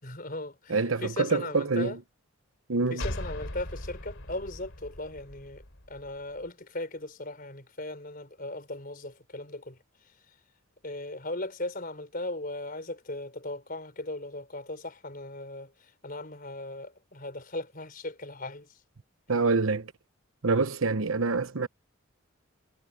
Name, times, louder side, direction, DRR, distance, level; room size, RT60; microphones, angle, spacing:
voice 1, 0.0-2.0 2.9-9.8 10.8-18.8, left 2 dB, 40° left, 4.8 m, -38 dB
voice 2, 0.7-2.0 2.7-3.0 19.3-19.9 20.4-21.7, right 4 dB, 75° right, 1.0 m, -26 dB
sound 1, 3.0-6.5, left 1 dB, 70° left, 3.3 m, -39 dB
head